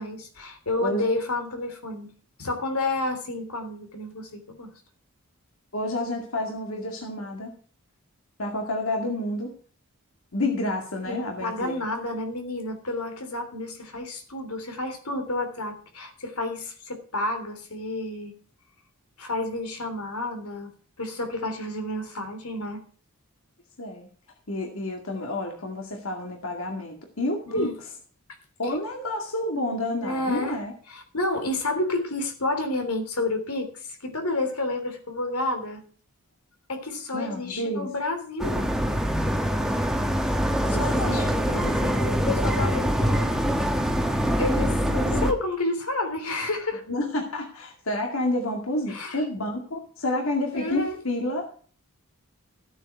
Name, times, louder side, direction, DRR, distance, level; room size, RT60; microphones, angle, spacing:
voice 1, 0.0-2.1 2.4-4.7 11.0-18.4 19.2-22.8 27.5-27.7 28.6-28.7 30.0-30.6 30.9-35.8 36.7-38.7 40.7-43.5 44.4-46.8 48.9-49.2 50.5-51.0, left 2 dB, 85° left, 6 dB, 3.4 m, -30 dB
voice 2, 5.7-7.5 8.4-9.5 10.3-11.8 23.8-24.1 24.5-27.9 28.6-30.7 37.1-37.9 40.6-41.3 44.9-45.3 46.9-51.5, left 1 dB, 65° left, 1 dB, 2.2 m, -29 dB
sound 1, 38.4-45.3, equal, ahead, 1.2 m, -24 dB
14.5 x 9.0 x 4.7 m, 0.44 s
head